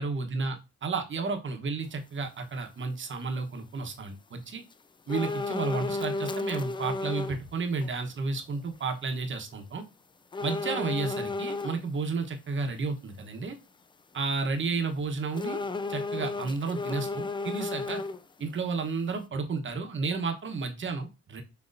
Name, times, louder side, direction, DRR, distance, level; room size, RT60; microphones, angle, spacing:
voice 1, 0.0-4.6 5.1-9.8 10.4-13.6 14.1-15.6 15.9-18.0 18.4-21.4, right 4 dB, 40° right, 5 dB, 1.1 m, -32 dB
sound 1, 5.1-7.4 7.8-7.9 10.3-11.8 15.3-18.4 18.8-18.9, left 3 dB, 15° left, 0.3 m, -33 dB
6.4 x 2.9 x 2.6 m, 0.27 s
cardioid pair, 90°, 30 cm